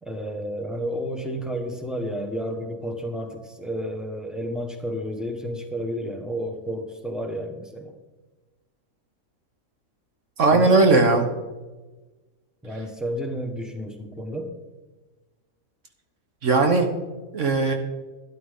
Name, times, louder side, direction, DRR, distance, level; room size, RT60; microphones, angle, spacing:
voice 1, 0.0-7.9 10.5-10.7 12.6-14.5, equal, ahead, 4 dB, 1.2 m, -31 dB
voice 2, 10.4-11.2 16.4-16.9 17.3-17.7, right 3 dB, 60° right, 5 dB, 1.4 m, -18 dB
12.5 x 11.0 x 3.7 m, 1.2 s
omnidirectional pair, 1.4 m